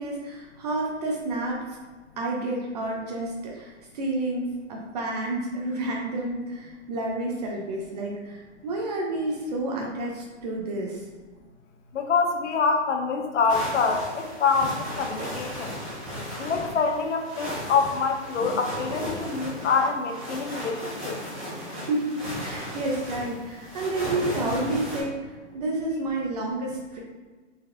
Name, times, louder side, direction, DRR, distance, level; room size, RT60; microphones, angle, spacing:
voice 1, 0.0-1.7 2.2-11.1 21.7-27.0, right 2 dB, 35° right, -1 dB, 0.6 m, -30 dB
voice 2, 11.9-15.8 16.4-21.2, left 5 dB, 70° left, 4 dB, 0.8 m, -25 dB
sound 1, 13.5-25.0, equal, 15° right, 1.2 m, -35 dB
4.0 x 3.2 x 2.6 m, 1.3 s
hypercardioid pair, 150°, 36 cm